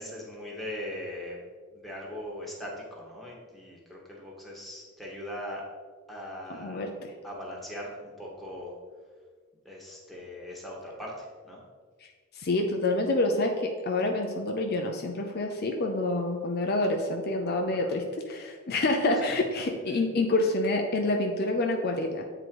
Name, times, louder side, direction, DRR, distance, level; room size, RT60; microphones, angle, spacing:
voice 1, 0.0-1.4 1.7-5.6 6.1-6.9 7.2-8.7 9.6-11.6 17.8-17.9 19.1-19.2, left 1 dB, ahead, -4 dB, 1.5 m, -40 dB
voice 2, 6.5-7.1 12.4-22.2, left 2 dB, 50° left, 3 dB, 0.6 m, -27 dB
7.9 x 3.9 x 4.6 m, 1.5 s
head